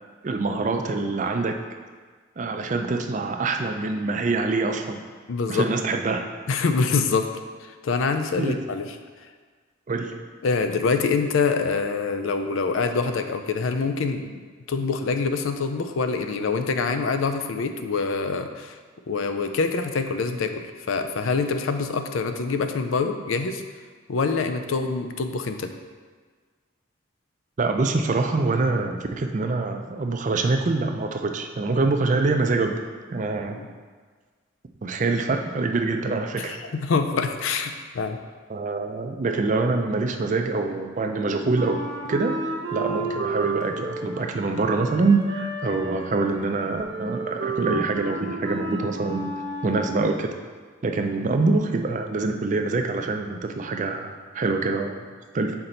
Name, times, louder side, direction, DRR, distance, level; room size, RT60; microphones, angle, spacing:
voice 1, 0.2-1.5 2.4-5.0 5.5-6.2 8.4-8.6 9.9-10.1 27.6-32.8 33.1-33.6 34.8-36.6 38.5-41.8 42.1-49.3 49.6-50.3 50.8-55.0 55.3-55.5, right 3 dB, 40° right, 4 dB, 0.4 m, -25 dB
voice 2, 5.3-5.7 6.5-7.3 7.8-8.9 10.4-14.3 14.7-18.8 19.1-23.6 24.1-25.7 33.5-33.7 36.4-38.2, left 4 dB, 85° left, 7 dB, 0.5 m, -25 dB
Wind instrument woodwind instrument, 41.5-50.0, right 3 dB, 65° right, 1.1 m, -32 dB
5.9 x 4.3 x 3.9 m, 1.5 s
head